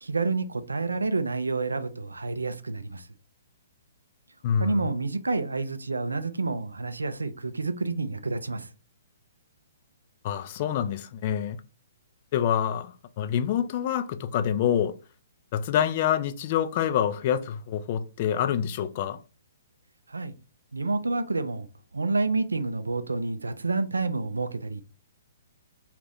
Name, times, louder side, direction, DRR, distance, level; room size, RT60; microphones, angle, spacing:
voice 1, 0.0-3.1 4.6-8.7 20.1-20.3 20.7-21.7 21.9-24.8, right 3 dB, 90° right, 0.4 m, -29 dB
voice 2, 4.4-4.9 10.2-11.6 12.3-15.0 15.5-19.2, left 9 dB, 45° left, 0.4 m, -26 dB
2.5 x 2.4 x 3.4 m
hypercardioid pair, 130°, 0 cm